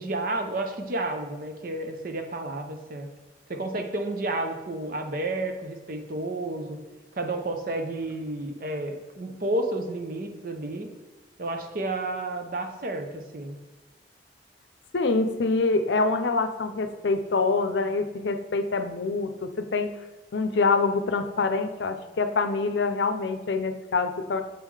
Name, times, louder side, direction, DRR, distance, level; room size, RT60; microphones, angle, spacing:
voice 1, 0.0-3.1 3.5-6.8 7.1-10.9 11.4-13.6, right 2 dB, 50° right, 5 dB, 0.7 m, -31 dB
voice 2, 14.9-19.9 20.3-24.4, left 3 dB, 85° left, 8 dB, 0.6 m, -25 dB
7.2 x 3.7 x 4.8 m, 1.2 s
head